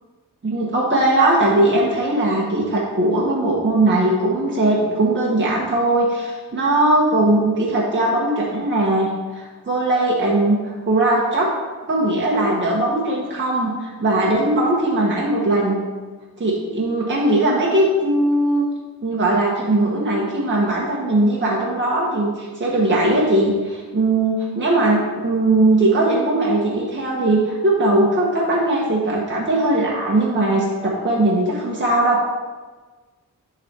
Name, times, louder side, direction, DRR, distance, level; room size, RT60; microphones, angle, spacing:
voice 1, 0.4-11.5 11.9-15.8 16.4-18.6 19.0-32.2, right 2 dB, 35° right, -5 dB, 1.5 m, -19 dB
10.5 x 4.1 x 4.5 m, 1.3 s
wide cardioid pair, 100°, 33 cm